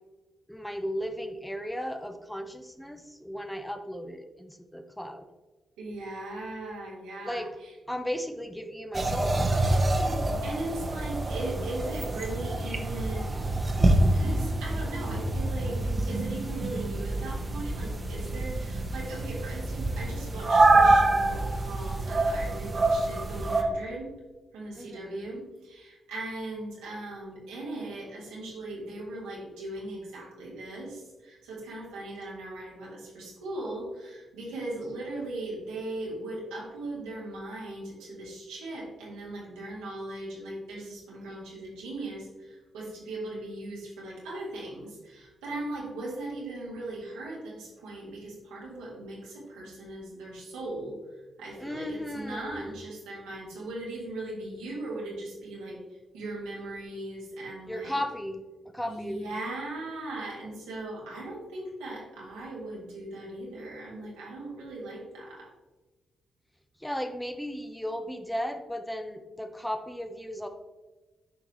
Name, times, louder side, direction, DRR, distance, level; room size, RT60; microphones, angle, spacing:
voice 1, 0.5-5.3 7.2-7.5 7.9-9.8 24.8-25.4 51.6-52.9 57.7-59.4 66.8-70.5, equal, 5° left, 6 dB, 0.9 m, -35 dB
voice 2, 5.8-7.7 10.4-13.5 14.1-15.8 16.1-24.1 24.5-51.0 51.4-55.8 56.1-58.0 58.8-65.5, right 2 dB, 85° right, -4 dB, 2.0 m, -38 dB
sound 1, 8.9-23.6, right 2 dB, 40° right, 1.1 m, -26 dB
8.4 x 5.1 x 3.2 m, 1.2 s
hypercardioid pair, 45°, 0 cm